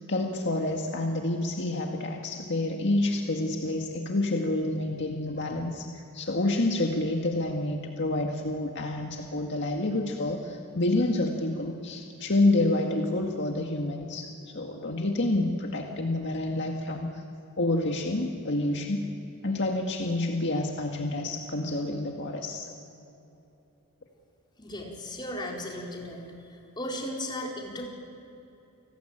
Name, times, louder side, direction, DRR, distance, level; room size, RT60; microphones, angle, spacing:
voice 1, 0.1-17.1 17.6-19.1 19.4-22.7, left 2 dB, 55° left, 1 dB, 1.9 m, -28 dB
voice 2, 24.6-26.3 26.8-27.9, left 1 dB, 20° left, -1 dB, 4.4 m, -36 dB
30.0 x 19.5 x 8.9 m, 2.9 s
head